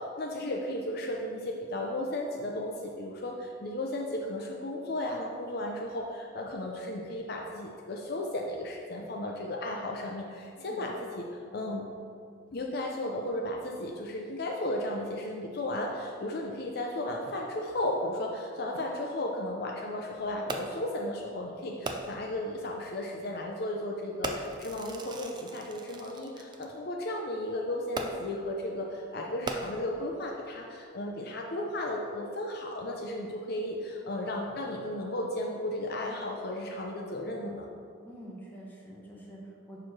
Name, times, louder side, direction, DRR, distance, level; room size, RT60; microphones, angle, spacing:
voice 1, 0.0-11.9 12.5-37.7, left 1 dB, 55° left, 0 dB, 0.5 m, -34 dB
voice 2, 10.6-10.9 38.0-39.8, right 1 dB, 10° left, -5 dB, 1.2 m, -47 dB
Fireworks, 20.5-20.9 21.8-22.4 23.2-23.4 24.2-26.7 27.9-28.5 29.3-30.1 30.8-30.9, right 2 dB, 20° right, 0.4 m, -38 dB
6.7 x 3.2 x 5.9 m, 2.3 s
head